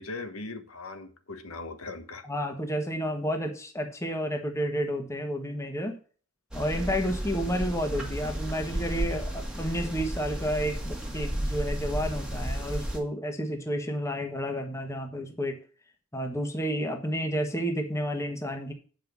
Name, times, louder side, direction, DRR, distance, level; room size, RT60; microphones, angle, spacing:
voice 1, 0.0-2.3, left 3 dB, 75° left, 8 dB, 1.3 m, -39 dB
voice 2, 2.3-6.0 6.5-15.6 16.1-18.7, equal, 15° left, 4 dB, 1.4 m, -31 dB
sound 1, 6.5-13.0, right 1 dB, 5° right, 1.8 m, -33 dB
9.0 x 5.5 x 6.0 m, 0.39 s
head